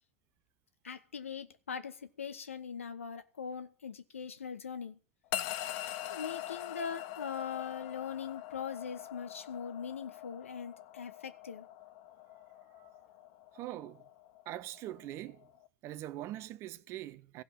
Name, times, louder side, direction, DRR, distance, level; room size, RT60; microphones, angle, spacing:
voice 1, 0.8-5.0 6.1-11.7, left 7 dB, 70° left, 1.1 m, -41 dB
sound 1, 5.3-15.7, left 13 dB, 45° left, 0.8 m, -43 dB
voice 2, 13.5-14.0 14.5-15.5 15.8-17.4, right 14 dB, 35° right, 0.7 m, -42 dB
15.5 x 5.6 x 9.9 m
figure-of-eight pair, 85°, 7 cm